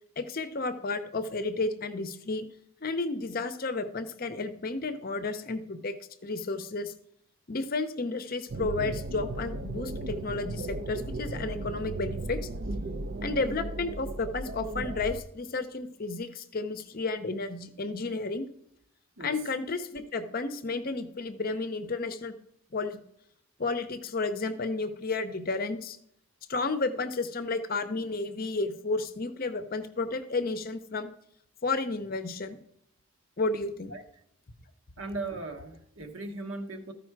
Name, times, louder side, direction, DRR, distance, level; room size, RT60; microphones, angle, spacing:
voice 1, 0.2-2.4 2.8-6.0 6.2-6.9 7.5-12.4 13.2-18.5 19.2-22.3 22.7-23.0 23.6-26.0 26.5-31.1 31.6-32.6 33.4-33.9, left 3 dB, 45° left, 10 dB, 0.6 m, -32 dB
sound 1, 8.5-15.2, right 2 dB, 45° right, 0.5 m, -36 dB
voice 2, 35.0-36.9, right 2 dB, 70° right, 6 dB, 1.1 m, -38 dB
13.5 x 5.1 x 4.6 m, 0.73 s
head